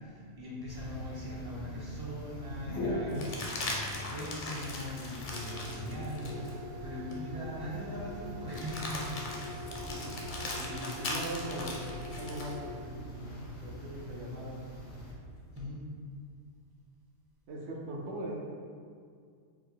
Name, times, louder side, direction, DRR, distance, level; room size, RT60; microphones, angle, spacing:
voice 1, 0.0-9.0 9.4-9.7 15.5-15.9, equal, 30° right, -6 dB, 0.4 m, -41 dB
sound 1, 0.7-15.1, left 1 dB, 80° left, 1.3 m, -41 dB
sound 2, 1.5-1.6 3.1-6.6 7.1-7.2 8.5-12.6 14.8-15.6, left 2 dB, 50° left, 0.6 m, -40 dB
voice 2, 10.5-11.8 12.2-12.6 13.6-14.6 17.5-18.4, right 1 dB, 65° right, -2 dB, 0.9 m, -39 dB
4.6 x 2.1 x 3.7 m, 2.2 s
omnidirectional pair, 1.3 m